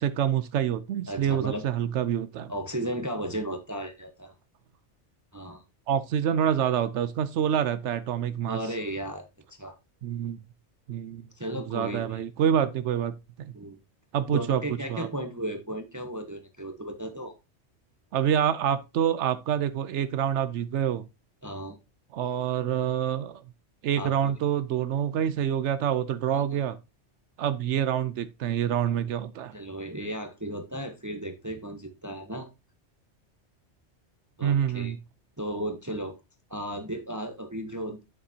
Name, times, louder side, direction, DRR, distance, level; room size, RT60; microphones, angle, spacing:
voice 1, 0.0-2.5 5.9-8.6 10.0-10.4 10.9-11.3 11.7-13.5 14.1-14.6 14.9-15.1 18.1-21.0 22.1-23.4 23.8-26.8 27.4-29.5 34.4-35.0, right 9 dB, 80° right, 0.9 m, -27 dB
voice 2, 1.1-1.6 2.5-4.3 5.3-5.6 8.5-9.3 9.6-9.7 11.3-12.2 13.5-13.8 14.3-17.3 21.4-21.8 24.0-24.3 26.3-26.6 29.5-32.5 34.4-34.9 35.4-36.1 36.5-38.0, right 1 dB, 15° right, 0.9 m, -35 dB
8.6 x 7.1 x 2.8 m
omnidirectional pair, 1.2 m